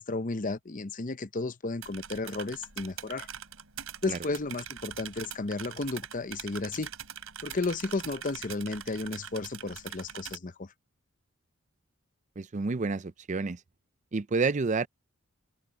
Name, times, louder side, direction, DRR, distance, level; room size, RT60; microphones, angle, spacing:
voice 1, 0.0-3.3 4.0-6.9 7.4-10.7, left 3 dB, 40° left, 0.8 m, -33 dB
sound 1, 1.8-10.4, right 9 dB, 80° right, 4.6 m, -43 dB
voice 2, 12.4-13.6 14.1-14.9, right 4 dB, 35° right, 0.5 m, -29 dB
head